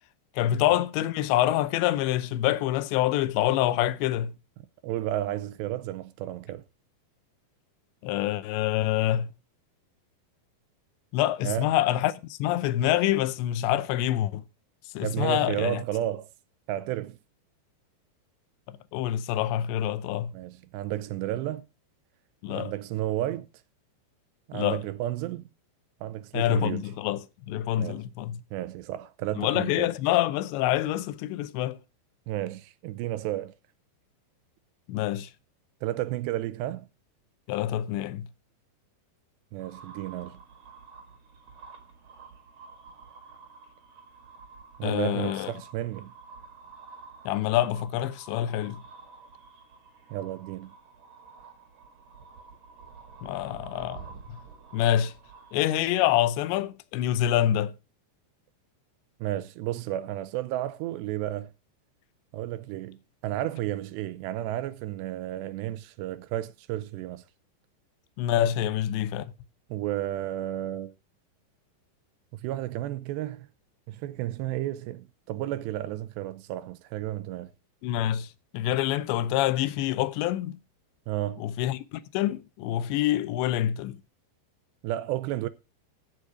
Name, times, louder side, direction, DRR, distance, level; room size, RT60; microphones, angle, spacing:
voice 1, 0.4-4.3 8.0-9.3 11.1-14.4 14.9-15.8 18.7-20.3 22.4-22.7 24.5-24.8 26.3-28.4 29.4-31.8 34.9-35.3 37.5-38.3 44.8-45.5 47.3-48.8 53.2-54.0 54.3-54.4 54.7-55.1 55.5-57.7 68.2-69.3 77.8-80.6 81.4-84.0, left 12 dB, 85° left, 2.9 m, -26 dB
voice 2, 4.8-6.6 11.4-11.7 15.0-16.3 16.7-17.2 20.3-21.7 22.5-23.5 24.5-25.5 26.0-26.9 27.7-28.0 28.5-29.9 32.3-33.5 35.8-36.9 39.5-40.4 44.8-46.1 50.1-50.7 59.2-61.5 62.3-67.2 69.7-70.9 72.4-73.5 73.9-77.5 81.1-81.4 84.8-85.5, right 14 dB, 80° right, 2.8 m, -32 dB
sound 1, 39.6-56.7, right 5 dB, 45° right, 2.9 m, -50 dB
15.0 x 6.5 x 4.9 m
omnidirectional pair, 5.1 m